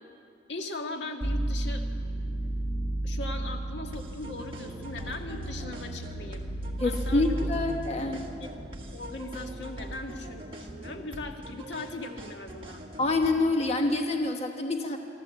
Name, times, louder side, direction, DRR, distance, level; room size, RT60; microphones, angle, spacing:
voice 1, 0.5-1.8 3.0-6.5 6.8-7.5 8.1-8.5 8.9-12.8, left 2 dB, 80° left, 4 dB, 1.7 m, -39 dB
sound 1, 1.2-10.8, right 1 dB, 15° left, 2.1 m, -34 dB
sound 2, 3.9-13.5, right 1 dB, 30° right, 1.7 m, -43 dB
voice 2, 6.8-8.2 13.0-15.0, left 2 dB, 35° left, 4 dB, 1.3 m, -26 dB
25.5 x 13.5 x 8.3 m, 2.4 s
head